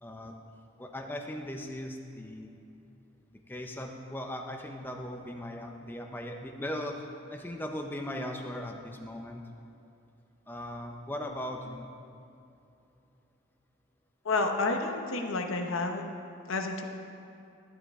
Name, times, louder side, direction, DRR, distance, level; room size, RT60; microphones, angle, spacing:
voice 1, 0.0-0.3 0.8-2.5 3.5-7.0 7.3-9.4 10.5-11.9, left 1 dB, 10° left, 2 dB, 0.5 m, -38 dB
voice 2, 14.2-16.0 16.5-16.8, left 3 dB, 80° left, 4 dB, 0.9 m, -30 dB
11.5 x 11.0 x 3.6 m, 2.7 s
head